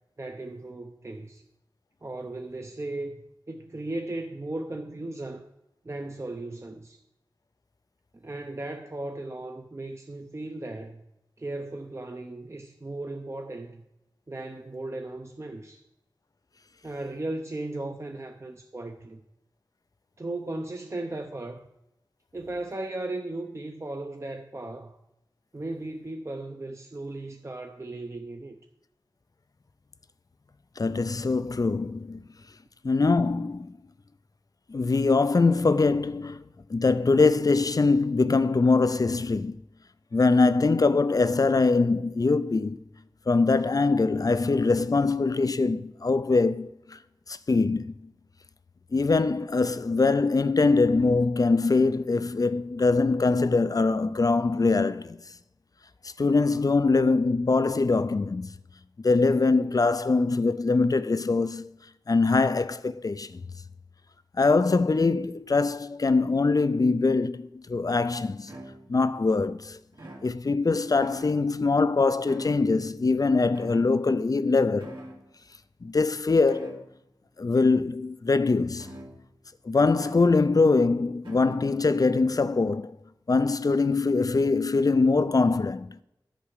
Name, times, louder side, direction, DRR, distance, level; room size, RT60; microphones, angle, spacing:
voice 1, 0.2-1.4 2.0-3.2 3.5-5.5 5.8-7.0 8.1-11.0 11.4-13.8 14.3-15.8 16.8-19.2 20.2-21.7 22.3-25.0 25.5-28.6, right 2 dB, 35° right, 0.6 m, -36 dB
voice 2, 30.8-32.2 32.8-33.7 34.7-39.6 40.1-42.8 43.3-47.0 47.3-47.9 48.9-55.2 56.2-58.5 59.0-61.7 62.1-63.4 64.4-68.5 68.9-69.8 70.2-75.0 75.8-76.8 77.4-78.9 79.6-82.9 83.3-86.0, left 3 dB, 45° left, 0.4 m, -23 dB
sound 1, 68.5-69.2 69.9-70.7 71.0-71.7 72.3-73.0 73.5-74.4 74.8-75.3 76.5-77.1 78.8-79.5 80.0-80.5 81.2-81.8, right 1 dB, 75° right, 2.1 m, -45 dB
10.5 x 4.8 x 6.4 m
wide cardioid pair, 60°, 8 cm